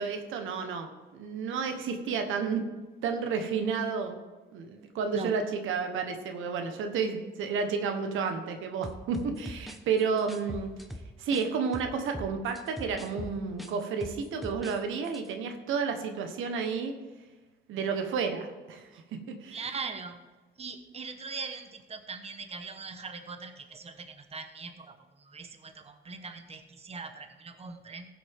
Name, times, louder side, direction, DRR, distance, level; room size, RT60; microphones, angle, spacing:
voice 1, 0.0-2.6 3.0-4.2 4.5-10.7 11.2-16.9 17.7-19.0 19.4-19.8, right 5 dB, 85° right, 6 dB, 1.2 m, -31 dB
sound 1, 8.8-11.5 11.7-14.8 15.0-15.3, equal, ahead, 1.1 m, -41 dB
voice 2, 19.5-20.2 20.6-24.1 24.3-24.9 25.3-28.1, right 4 dB, 30° right, 7 dB, 1.1 m, -40 dB
15.0 x 7.7 x 3.6 m, 1.3 s
cardioid pair, 90°, 20 cm